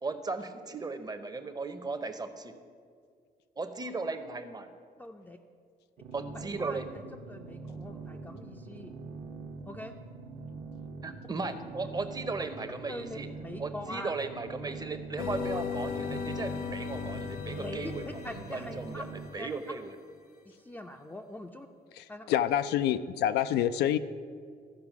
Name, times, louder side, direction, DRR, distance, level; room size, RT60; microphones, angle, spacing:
voice 1, 0.0-2.6 3.6-4.7 6.1-6.9 11.0-13.3 13.6-19.1 19.3-20.0, right 3 dB, 25° right, 9 dB, 0.7 m, -36 dB
voice 2, 5.0-5.4 6.3-6.8 7.1-8.9 9.7-9.9 12.9-14.1 17.6-17.9 18.2-19.0 19.4-19.5 20.4-21.7 22.1-22.3, left 1 dB, 10° left, 2 dB, 0.5 m, -43 dB
sound 1, 6.0-19.3, right 4 dB, 60° right, 1.0 m, -44 dB
sound 2, 15.2-19.4, left 5 dB, 70° left, 1.0 m, -37 dB
voice 3, 22.0-24.0, left 11 dB, 90° left, 12 dB, 0.4 m, -27 dB
13.5 x 4.8 x 6.0 m, 2.2 s
cardioid pair, 95°, 17 cm